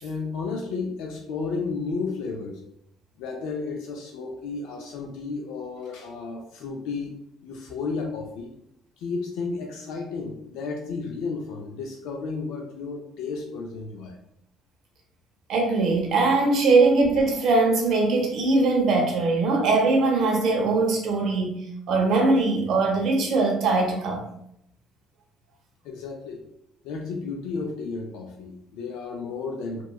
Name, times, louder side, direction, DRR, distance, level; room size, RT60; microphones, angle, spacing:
voice 1, 0.0-2.6 3.2-7.2 7.4-8.5 9.0-14.2 25.8-26.4 26.8-29.8, left 4 dB, 90° left, 1 dB, 0.4 m, -33 dB
voice 2, 15.5-21.6 21.9-24.2, right 3 dB, 55° right, 1 dB, 0.7 m, -21 dB
2.9 x 2.2 x 2.3 m, 0.75 s
cardioid pair, 150°, 0 cm